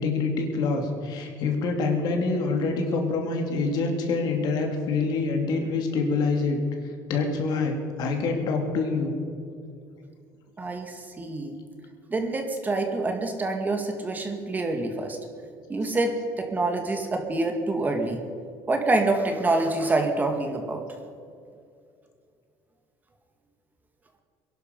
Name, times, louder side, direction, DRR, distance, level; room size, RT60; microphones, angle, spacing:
voice 1, 0.0-6.6 7.1-9.1, left 4 dB, 65° left, 3 dB, 2.9 m, -26 dB
voice 2, 10.6-11.6 12.1-15.2 15.7-18.2 18.7-20.8, right 2 dB, 20° right, 4 dB, 2.1 m, -26 dB
21.5 x 11.5 x 5.4 m, 2.4 s
cardioid pair, 110°, 8 cm